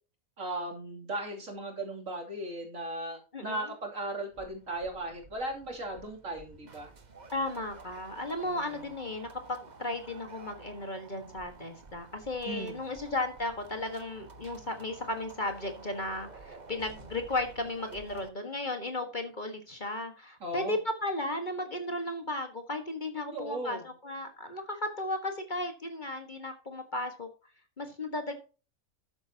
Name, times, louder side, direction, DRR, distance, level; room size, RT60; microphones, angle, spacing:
voice 1, 0.4-6.9 8.4-8.9 12.4-12.8 20.4-20.8 23.3-23.9, right 1 dB, 65° right, 1 dB, 3.2 m, -37 dB
voice 2, 3.3-3.7 7.3-27.3 27.8-28.4, left 2 dB, 35° left, 6 dB, 1.6 m, -35 dB
sound 1, 4.3-18.3, right 3 dB, 35° right, 1.2 m, -51 dB
12.5 x 8.7 x 2.8 m, 0.35 s
omnidirectional pair, 1.5 m